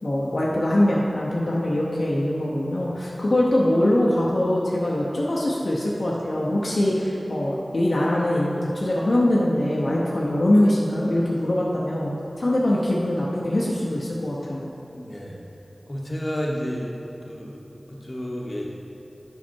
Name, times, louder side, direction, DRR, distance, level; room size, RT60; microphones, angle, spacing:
voice 1, 0.0-14.7, left 1 dB, 60° left, -5 dB, 0.8 m, -23 dB
voice 2, 14.9-15.4 15.9-16.9 17.2-18.7, equal, 35° left, -3 dB, 1.2 m, -31 dB
7.4 x 5.7 x 4.5 m, 2.9 s
wide cardioid pair, 55°, 0 cm